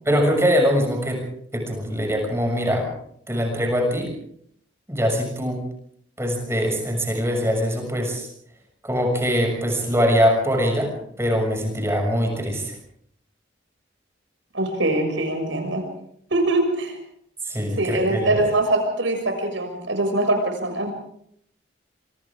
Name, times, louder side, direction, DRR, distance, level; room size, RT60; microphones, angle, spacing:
voice 1, 0.0-1.2 1.5-2.9 3.3-4.1 4.9-5.6 6.2-8.3 8.8-10.9 11.2-12.8 17.4-18.4, equal, 15° right, 3 dB, 6.7 m, -22 dB
voice 2, 14.5-15.8 16.3-17.0 17.8-20.9, right 2 dB, 75° right, 4 dB, 6.6 m, -23 dB
27.5 x 25.5 x 3.7 m, 0.67 s
head